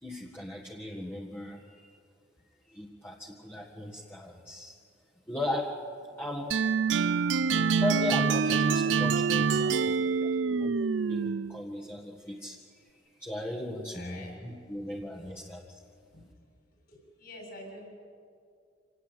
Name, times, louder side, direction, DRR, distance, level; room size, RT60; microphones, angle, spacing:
voice 1, 0.0-1.9 2.7-4.7 5.3-5.8 6.2-6.8 7.8-10.7 11.0-12.6 13.2-15.8, left 2 dB, 10° left, -2 dB, 1.7 m, -37 dB
sound 1, 6.5-11.6, right 5 dB, 80° right, 0.6 m, -26 dB
voice 2, 8.4-8.9 9.6-10.4 13.9-14.3 16.1-16.2 16.9-17.8, left 1 dB, 60° left, 1 dB, 7.2 m, -47 dB
26.5 x 18.0 x 9.2 m, 2.3 s
head